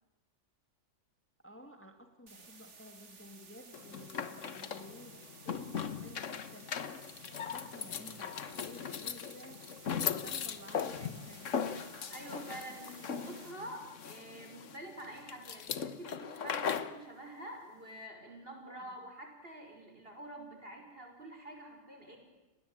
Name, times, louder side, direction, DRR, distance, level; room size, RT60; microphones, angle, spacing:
voice 1, 1.4-6.9 7.3-9.7 10.0-11.5 12.5-12.8 13.1-13.2 18.6-19.0, equal, 10° left, 6 dB, 2.1 m, -54 dB
sound 1, 2.3-13.5, right 4 dB, 70° right, 2.3 m, -55 dB
sound 2, 3.7-17.0, left 7 dB, 80° left, 1.5 m, -39 dB
voice 2, 12.1-22.2, right 1 dB, 50° right, 4 dB, 5.7 m, -47 dB
30.0 x 21.0 x 8.8 m, 1.1 s
omnidirectional pair, 1.3 m